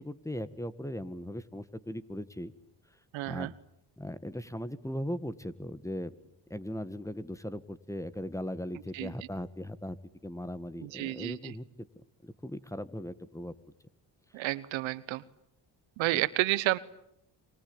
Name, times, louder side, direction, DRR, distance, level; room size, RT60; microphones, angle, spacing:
voice 1, 0.0-2.5 3.3-3.5 4.0-6.1 6.5-10.0 10.2-11.9 12.2-13.6, left 1 dB, 5° left, 14 dB, 1.9 m, -38 dB
voice 2, 3.1-3.5 8.9-9.1 10.8-11.5 14.3-15.2 16.0-16.8, right 17 dB, 90° right, 17 dB, 1.1 m, -30 dB
26.5 x 24.0 x 9.0 m, 0.78 s
supercardioid pair, 65°, 45 cm